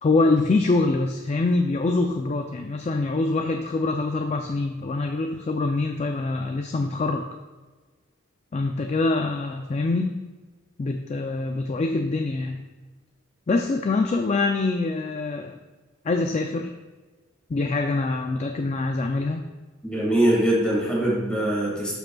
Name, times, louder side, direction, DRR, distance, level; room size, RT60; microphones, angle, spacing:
voice 1, 0.0-7.3 8.5-10.2 10.8-12.6 13.5-15.5 16.0-16.7 17.5-19.4, left 3 dB, 35° left, 4 dB, 0.4 m, -24 dB
voice 2, 19.8-21.9, right 1 dB, 5° left, -5 dB, 1.9 m, -22 dB
11.5 x 5.0 x 2.3 m, 1.3 s
head